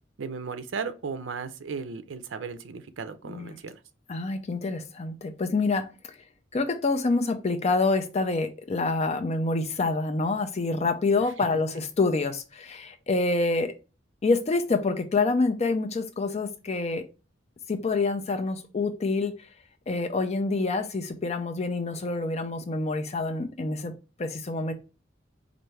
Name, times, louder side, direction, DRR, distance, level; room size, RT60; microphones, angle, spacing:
voice 1, 0.2-3.8 11.4-11.6, right 5 dB, 75° right, 0.5 m, -36 dB
voice 2, 3.2-3.6 4.1-5.9 6.5-13.7 14.2-17.0 17.7-19.3 19.9-23.9 24.2-24.7, left 3 dB, 35° left, 0.5 m, -27 dB
4.5 x 2.6 x 3.1 m
head